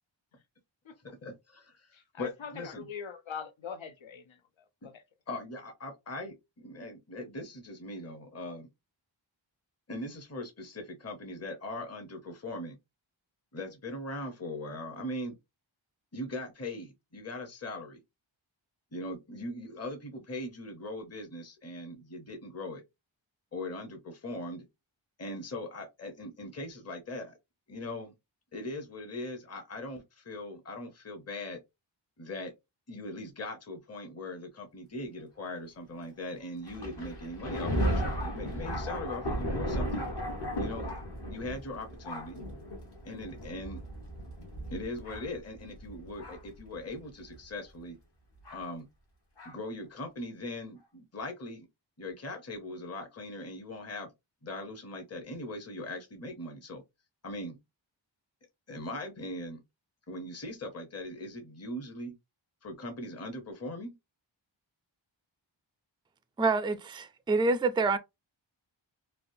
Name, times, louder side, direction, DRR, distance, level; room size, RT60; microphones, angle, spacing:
voice 1, 1.0-2.9 4.8-4.9 5.3-8.7 9.9-12.8 13.5-15.4 16.1-18.0 18.9-22.8 23.5-24.7 25.2-27.4 27.7-28.1 28.5-31.6 32.2-32.5 32.9-40.1 40.6-40.9 41.3-42.4 43.0-43.8 44.7-48.0 48.5-48.9 49.4-51.7 52.0-54.1 54.4-56.8 57.2-57.6 58.7-59.6 60.1-62.2 62.6-63.9, left 1 dB, 30° left, 0.8 m, -40 dB
voice 2, 1.9-5.0, left 7 dB, 75° left, 0.7 m, -43 dB
Thunder, 36.7-46.6 47.3-47.4 48.5-48.6 49.4-49.5, equal, 55° left, 1.2 m, -35 dB
voice 3, 66.4-68.0, right 3 dB, 10° right, 0.3 m, -27 dB
3.4 x 2.4 x 2.6 m
wide cardioid pair, 70°, 47 cm